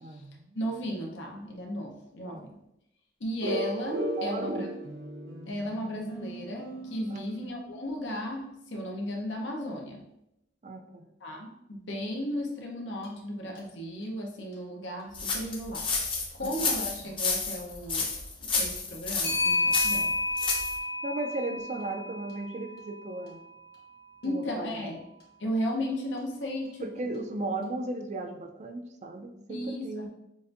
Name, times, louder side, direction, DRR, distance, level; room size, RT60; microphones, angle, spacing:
voice 1, 0.0-0.6 2.3-2.5 4.1-4.8 7.1-7.4 10.6-11.1 16.4-16.5 21.0-23.4 24.2-24.9 26.8-30.1, right 2 dB, 40° right, 6 dB, 0.4 m, -36 dB
voice 2, 0.5-2.6 3.2-4.7 5.5-10.0 11.2-15.9 16.3-18.1 18.4-20.1 20.5-20.6 24.2-25.0 25.4-27.1 29.5-30.1, equal, 75° left, 1 dB, 0.8 m, -35 dB
sound 1, 3.4-8.0, right 1 dB, 75° right, 0.7 m, -36 dB
Clock, 13.0-13.1 13.6-13.7 16.5-16.7 19.2-23.5, left 2 dB, 60° left, 1.3 m, -31 dB
sound 2, 15.1-20.8, left 4 dB, 30° left, 0.7 m, -30 dB
6.6 x 2.6 x 2.6 m, 0.84 s
head